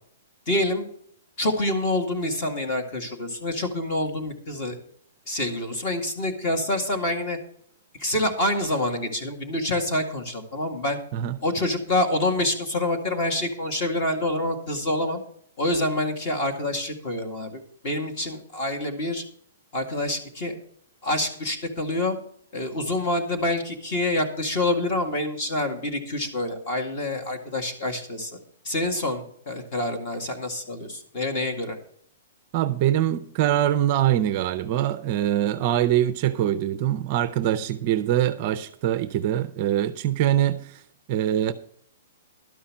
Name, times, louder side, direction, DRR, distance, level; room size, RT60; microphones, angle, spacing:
voice 1, 0.5-0.9 1.4-4.8 5.3-7.4 8.0-11.0 11.4-15.2 15.6-19.2 19.7-20.6 21.0-22.2 22.5-28.4 28.6-31.8, left 1 dB, 30° left, 2.0 m, -27 dB
voice 2, 32.5-40.8 41.1-41.5, right 11 dB, 30° right, 0.5 m, -23 dB
12.0 x 5.6 x 7.2 m
hypercardioid pair, 175°, 0 cm